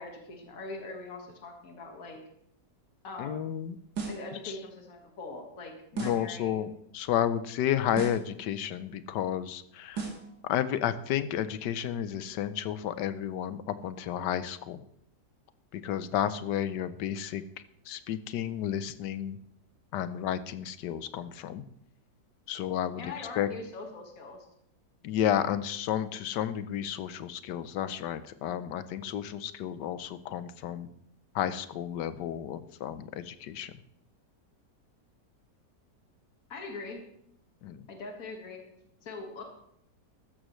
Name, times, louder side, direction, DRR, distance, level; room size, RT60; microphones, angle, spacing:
voice 1, 0.0-2.2 3.0-3.6 4.1-6.6 23.0-24.5 36.5-37.0 37.9-38.7 39.0-39.4, left 3 dB, 55° left, 2 dB, 2.1 m, -42 dB
voice 2, 3.2-3.8 4.4-4.6 5.9-10.1 10.4-14.8 15.7-17.4 17.9-19.4 19.9-21.6 22.5-23.5 25.0-30.9 31.3-33.8 37.6-37.9, left 10 dB, 75° left, 13 dB, 1.3 m, -32 dB
sound 1, 3.9-4.3 6.0-6.3 7.9-8.3 10.0-10.3, right 5 dB, 85° right, 2.3 m, -36 dB
14.5 x 13.0 x 3.1 m, 0.72 s
omnidirectional pair, 1.9 m